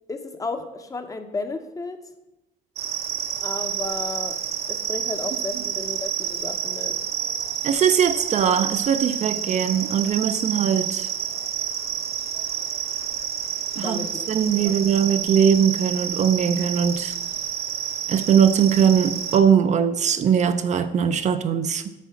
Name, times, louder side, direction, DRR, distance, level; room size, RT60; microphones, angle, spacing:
voice 1, 0.1-2.0 3.4-4.4 4.7-7.0 13.8-14.3 14.6-14.8, left 3 dB, 20° left, 8 dB, 0.8 m, -33 dB
sound 1, 2.8-19.4, right 9 dB, 70° right, 0.9 m, -29 dB
voice 2, 7.6-11.1 13.8-17.1 18.1-21.8, right 7 dB, 45° right, 10 dB, 0.5 m, -20 dB
8.4 x 4.1 x 5.8 m, 0.97 s
cardioid pair, 110°, 17 cm